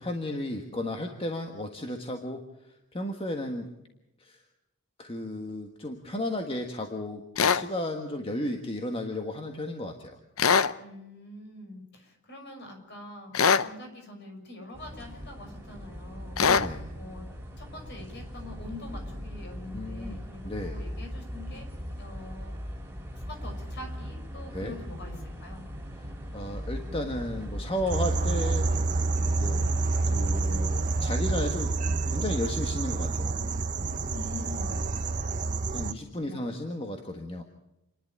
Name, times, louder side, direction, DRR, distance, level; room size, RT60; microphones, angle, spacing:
voice 1, 0.0-2.4 2.9-3.7 4.2-4.4 5.0-10.2 16.4-16.9 19.7-20.2 20.4-20.8 24.5-24.8 25.9-28.7 29.4-29.7 30.1-31.8 32.1-33.3 35.7-37.4, left 1 dB, 25° left, 4 dB, 1.5 m, -34 dB
sound 1, 7.4-7.6 10.4-10.7 13.3-13.7 16.4-16.7, left 6 dB, 75° left, 0.7 m, -22 dB
voice 2, 10.8-16.5 16.9-17.3 17.6-21.7 22.0-22.6 23.3-25.6 34.1-34.8 36.2-36.4, left 2 dB, 50° left, 3 dB, 6.0 m, -44 dB
sound 2, 14.7-31.5, equal, 10° right, 3.1 m, -39 dB
sound 3, 27.9-35.9, right 3 dB, 35° right, 0.8 m, -28 dB
28.5 x 11.0 x 8.8 m, 0.91 s
head